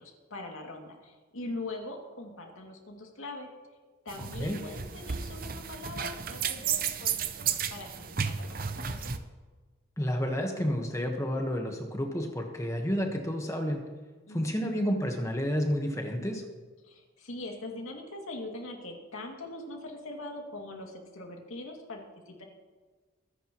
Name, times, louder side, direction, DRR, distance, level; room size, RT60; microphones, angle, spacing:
voice 1, 0.0-3.5 4.0-8.6 8.9-9.2 14.3-14.8 16.8-22.5, left 2 dB, 90° left, 1 dB, 2.4 m, -42 dB
sound 1, 4.1-9.2, right 7 dB, 45° right, 0.7 m, -33 dB
voice 2, 10.0-13.8 14.3-16.5, equal, 15° left, 3 dB, 1.3 m, -30 dB
24.0 x 10.0 x 3.1 m, 1.4 s
head